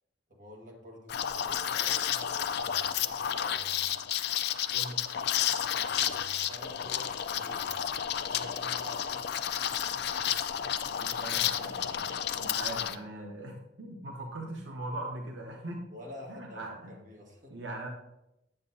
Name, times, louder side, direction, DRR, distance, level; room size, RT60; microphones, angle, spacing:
voice 1, 0.3-3.8 5.6-7.7 8.3-9.3 15.9-16.6 16.9-17.5, left 1 dB, 45° right, -1 dB, 1.6 m, -48 dB
Liquid, 1.1-13.0, left 9 dB, 60° left, 0.4 m, -31 dB
voice 2, 11.0-12.1 12.4-15.9 16.3-16.9 17.5-17.9, right 1 dB, 80° right, 1 dB, 0.8 m, -40 dB
9.0 x 7.3 x 2.7 m, 0.90 s
head